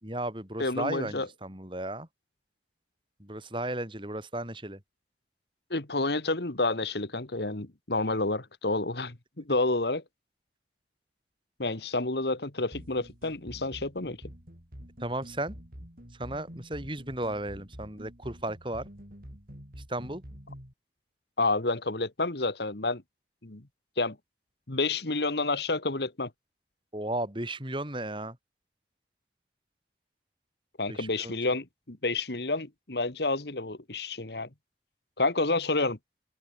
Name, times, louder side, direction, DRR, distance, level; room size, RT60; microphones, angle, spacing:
voice 1, 0.0-2.1 3.2-4.8 15.0-15.6 16.2-18.9 19.9-20.2 26.9-28.4 30.9-31.3, right 1 dB, 25° right, 6.0 m, -34 dB
voice 2, 0.6-1.3 5.7-10.0 11.6-14.2 21.4-23.0 23.4-23.6 24.0-24.2 24.7-26.3 30.8-34.5 35.2-36.0, left 2 dB, 70° left, 1.9 m, -29 dB
sound 1, 12.7-20.7, equal, 50° right, 6.1 m, -47 dB
head